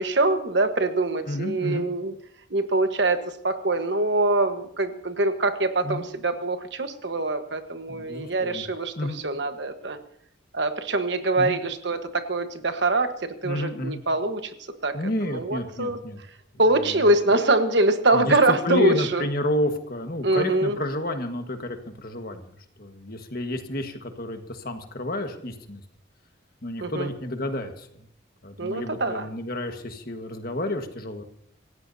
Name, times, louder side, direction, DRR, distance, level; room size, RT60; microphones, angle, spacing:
voice 1, 0.0-2.1 2.5-8.9 9.2-10.0 10.5-14.5 14.8-14.9 15.2-16.0 16.6-19.2 20.2-20.8 26.8-27.1 28.6-29.3, right 2 dB, 60° right, 8 dB, 1.3 m, -24 dB
voice 2, 1.3-1.9 5.8-6.0 7.9-8.6 9.0-9.2 11.4-11.6 13.4-14.0 14.9-16.2 16.9-17.1 18.1-25.8 26.6-28.0 28.4-31.2, left 1 dB, 50° left, 6 dB, 1.6 m, -30 dB
26.5 x 16.0 x 2.8 m, 0.67 s
head